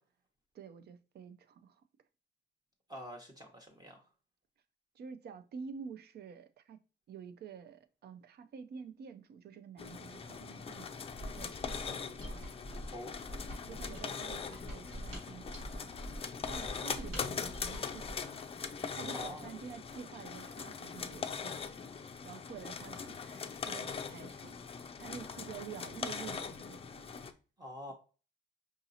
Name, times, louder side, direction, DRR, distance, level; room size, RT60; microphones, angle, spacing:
voice 1, 0.5-1.8 5.0-6.8 7.1-12.5 13.6-16.2 16.5-18.3 18.9-21.8 22.2-24.5 25.0-27.0, right 6 dB, 55° right, 0.5 m, -49 dB
voice 2, 2.9-4.0 12.9-13.1 16.6-16.7 19.1-19.5 27.6-27.9, left 1 dB, 20° right, 0.9 m, -46 dB
sound 1, 9.8-27.3, left 6 dB, 30° left, 0.4 m, -41 dB
Mechanisms, 11.1-18.3, equal, 90° right, 1.9 m, -45 dB
4.8 x 2.7 x 2.7 m
cardioid pair, 90°, 20 cm